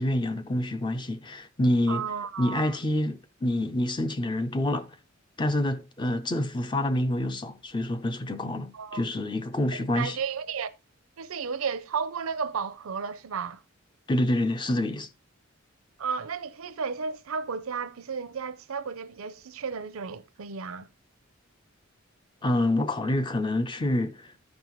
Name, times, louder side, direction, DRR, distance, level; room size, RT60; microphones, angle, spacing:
voice 1, 0.0-2.1 2.4-5.0 5.4-10.2 14.1-15.1 22.4-24.5, left 1 dB, 20° left, 0.5 m, -27 dB
voice 2, 1.9-2.8 8.7-9.0 10.0-10.7 11.2-13.6 16.0-20.9, right 6 dB, 80° right, 0.6 m, -33 dB
14.0 x 5.3 x 3.1 m
head